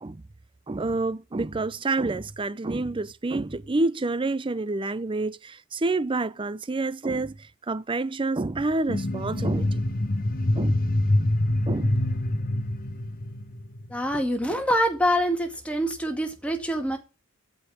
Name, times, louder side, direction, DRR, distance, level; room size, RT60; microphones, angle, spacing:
voice 1, 0.7-7.4 7.7-9.8 10.6-10.8 11.7-12.0, right 2 dB, 25° right, 0.5 m, -28 dB
sound 1, 8.9-14.0, left 1 dB, 40° left, 1.3 m, -25 dB
voice 2, 13.9-17.0, equal, 5° left, 2.0 m, -25 dB
13.5 x 5.3 x 6.3 m
head